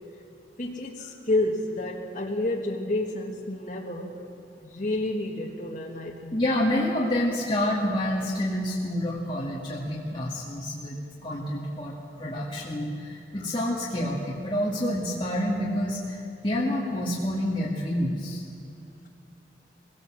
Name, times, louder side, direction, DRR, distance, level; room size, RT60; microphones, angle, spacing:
voice 1, 0.6-4.2 4.6-6.4, left 2 dB, 45° left, -1 dB, 1.6 m, -30 dB
voice 2, 6.3-18.4, left 1 dB, 25° left, -5 dB, 2.2 m, -28 dB
22.0 x 17.5 x 7.6 m, 2.4 s
head